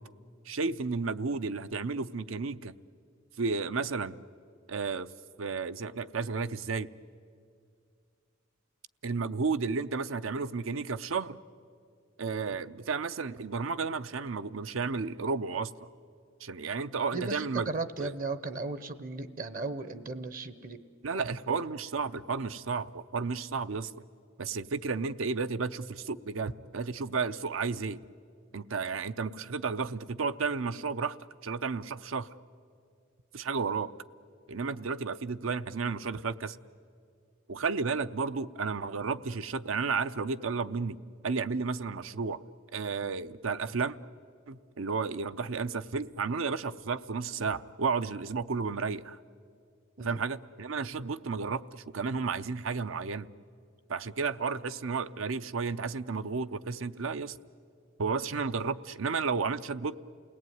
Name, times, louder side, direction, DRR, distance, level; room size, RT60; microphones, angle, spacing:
voice 1, 0.5-2.7 3.4-4.2 4.7-5.1 5.4-6.9 9.0-11.4 12.2-15.7 16.4-17.7 18.0-18.1 21.0-23.9 24.4-28.0 28.5-31.2 31.4-32.3 33.3-33.9 34.5-36.6 37.5-41.0 41.2-42.4 42.7-44.0 44.5-49.2 50.0-53.3 53.9-57.4 58.0-60.0, right 4 dB, 75° right, 13 dB, 0.6 m, -32 dB
voice 2, 17.1-20.8 21.5-21.6 50.0-50.2 50.8-50.9, right 3 dB, 45° right, 14 dB, 0.8 m, -36 dB
28.5 x 18.5 x 9.4 m, 2.2 s
head